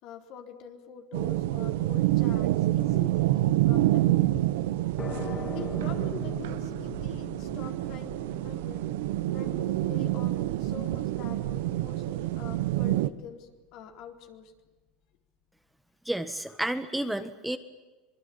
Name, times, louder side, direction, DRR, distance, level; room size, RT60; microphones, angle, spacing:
voice 1, 0.0-4.1 5.0-8.8 9.3-14.5, left 8 dB, 60° left, 5 dB, 4.0 m, -45 dB
sound 1, 1.1-13.1, right 15 dB, 80° right, 1.2 m, -27 dB
sound 2, 5.0-12.4, left 4 dB, 35° left, 5.0 m, -43 dB
voice 2, 16.0-17.6, right 1 dB, 5° right, 10 dB, 1.6 m, -31 dB
25.5 x 22.0 x 8.7 m, 1.2 s
supercardioid pair, 105°, 0 cm